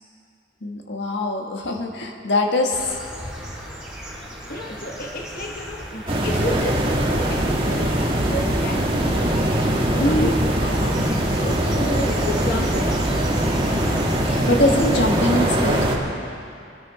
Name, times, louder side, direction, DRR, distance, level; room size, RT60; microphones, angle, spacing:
voice 1, 0.6-3.0 10.0-10.3 14.2-15.9, left 1 dB, 90° left, 2 dB, 1.6 m, -22 dB
Slam, 2.4-3.4 5.6-5.8 6.2-7.4, left 1 dB, 70° left, 3.3 m, -38 dB
sound 1, 2.7-15.6, equal, 5° right, 3.8 m, -34 dB
voice 2, 4.5-6.9 7.3-8.0 8.3-9.3 9.9-13.0, left 1 dB, 55° left, 1 dB, 1.3 m, -32 dB
Stormy winds through the trees, 6.1-16.0, right 1 dB, 30° right, 1.8 m, -22 dB
23.5 x 9.8 x 5.0 m, 2.5 s
head